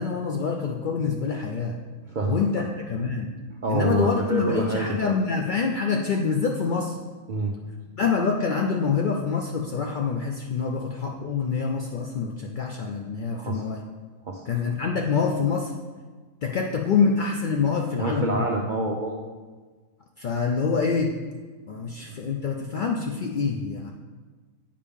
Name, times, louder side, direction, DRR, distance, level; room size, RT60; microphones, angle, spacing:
voice 1, 0.0-1.8 2.3-3.3 3.7-7.0 8.0-13.9 14.5-15.7 16.4-18.5 20.2-21.2 21.7-23.9, left 5 dB, 80° left, 2 dB, 0.4 m, -26 dB
voice 2, 2.1-2.4 3.5-5.1 7.3-7.5 13.3-13.7 14.2-14.4 17.9-19.1 21.7-22.2, right 2 dB, 55° right, 0 dB, 0.5 m, -27 dB
8.5 x 5.1 x 3.6 m, 1.4 s
omnidirectional pair, 1.4 m